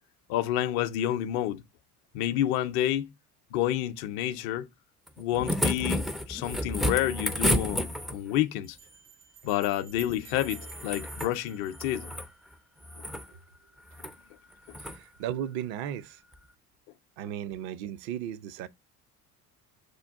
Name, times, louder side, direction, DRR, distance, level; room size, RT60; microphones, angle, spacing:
voice 1, 0.3-1.6 2.1-3.1 3.5-4.7 5.2-8.8 9.4-12.1 14.7-14.8, left 12 dB, 55° left, 0.6 m, -29 dB
sound 1, 5.1-8.4 10.3-11.3 11.7-12.3 12.8-13.3 13.9-14.1 14.7-15.0 16.3-16.4, equal, ahead, 0.3 m, -31 dB
sound 2, 8.6-12.6, right 9 dB, 85° right, 1.3 m, -51 dB
voice 2, 14.8-16.2 17.2-18.7, right 10 dB, 55° right, 0.6 m, -35 dB
6.5 x 2.3 x 3.4 m
figure-of-eight pair, 65°, 46 cm